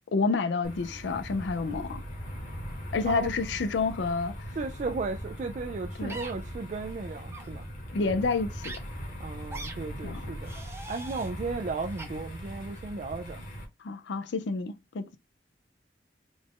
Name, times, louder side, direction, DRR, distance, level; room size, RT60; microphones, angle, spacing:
voice 1, 0.1-2.0 2.9-4.5 6.0-6.2 7.9-8.7 10.0-10.2 13.8-15.2, left 4 dB, 80° left, 0.5 m, -29 dB
sound 1, 0.6-13.6, equal, 45° left, 1.2 m, -40 dB
voice 2, 4.6-7.7 9.2-10.5 10.9-13.4, right 3 dB, 40° right, 0.3 m, -35 dB
sound 2, 6.1-6.3 7.3-7.5 8.6-8.8 9.5-9.7 10.4-11.3 12.0-12.1, right 2 dB, 15° right, 0.7 m, -41 dB
3.8 x 2.4 x 3.6 m
head